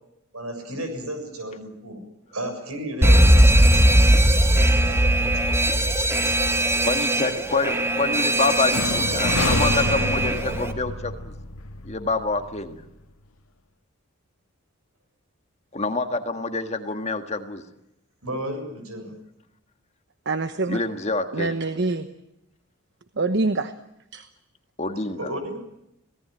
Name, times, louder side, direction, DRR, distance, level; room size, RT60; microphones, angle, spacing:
voice 1, 0.3-2.0 2.3-3.3 5.2-5.4 18.2-19.2 25.2-25.6, right 1 dB, 85° right, 7 dB, 7.2 m, -32 dB
Alarm, 3.0-10.7, right 1 dB, 10° right, 1.5 m, -19 dB
voice 2, 6.8-11.3 11.8-12.8 15.7-17.6 20.7-21.5 24.8-25.3, left 3 dB, 30° left, 7 dB, 1.7 m, -27 dB
sound 1, 8.7-12.6, left 2 dB, 85° left, 1.8 m, -28 dB
voice 3, 20.2-20.8 21.3-22.1 23.1-23.7 24.1-24.3, right 3 dB, 55° right, 10 dB, 1.0 m, -25 dB
25.5 x 18.0 x 9.0 m, 0.84 s
head